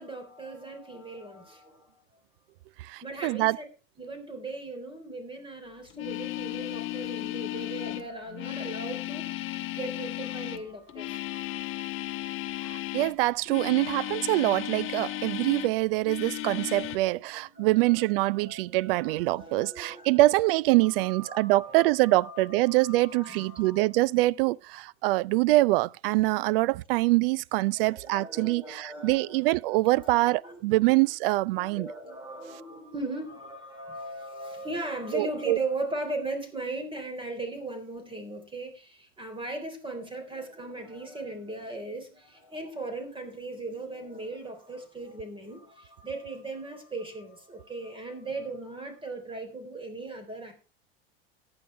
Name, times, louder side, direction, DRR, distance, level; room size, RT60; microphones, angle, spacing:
voice 1, 0.0-2.0 3.0-3.6 4.0-12.2 16.7-20.5 20.8-23.9 27.8-31.1 31.5-50.5, right 2 dB, 15° right, 3.7 m, -39 dB
voice 2, 2.8-3.6 12.9-31.9 35.1-35.6, right 19 dB, 65° right, 0.5 m, -24 dB
sound 1, 5.9-13.2 13.5-15.8 16.0-17.0, left 16 dB, 40° left, 1.2 m, -35 dB
14.5 x 9.8 x 3.3 m
hypercardioid pair, 95°, 31 cm